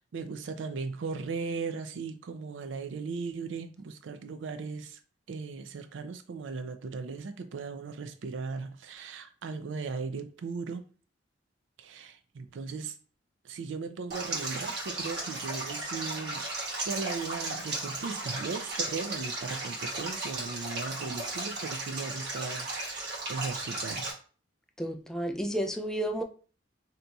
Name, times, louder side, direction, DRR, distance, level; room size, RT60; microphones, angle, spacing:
voice 1, 0.0-5.0 5.3-10.8 11.8-12.9 13.4-16.5 16.8-24.2, right 4 dB, 80° right, 0.4 m, -37 dB
Stream, 14.1-24.1, right 2 dB, 60° right, 1.2 m, -35 dB
voice 2, 24.8-26.2, right 1 dB, 5° left, 0.3 m, -31 dB
2.8 x 2.3 x 3.9 m
head